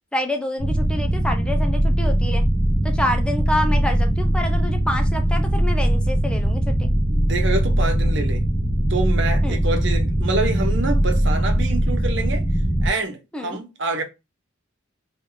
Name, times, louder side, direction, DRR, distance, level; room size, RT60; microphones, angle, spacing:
voice 1, 0.1-2.4 2.8-6.9 9.4-9.6 13.3-13.6, left 1 dB, 5° left, 0.7 m, -27 dB
sound 1, 0.6-12.9, right 1 dB, 55° left, 1.7 m, -20 dB
voice 2, 7.1-8.4 8.9-12.4 12.8-14.0, right 3 dB, 60° right, 1.1 m, -27 dB
3.7 x 3.3 x 3.9 m
head